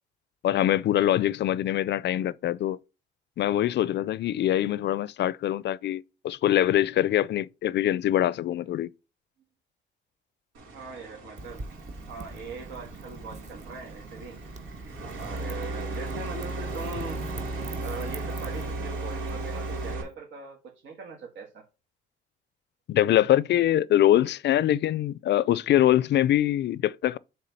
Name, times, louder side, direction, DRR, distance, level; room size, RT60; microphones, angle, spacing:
voice 1, 0.4-2.8 3.4-8.9 22.9-27.2, left 12 dB, 60° left, 0.5 m, -23 dB
sound 1, 10.5-20.0, right 2 dB, 90° right, 2.6 m, -36 dB
voice 2, 10.7-11.6 12.1-14.4 15.2-17.2 17.8-21.6, right 4 dB, 75° right, 1.7 m, -41 dB
Wind / Fire, 11.4-19.9, right 3 dB, 35° right, 1.0 m, -42 dB
7.5 x 3.5 x 5.8 m
cardioid pair, 90°, 20 cm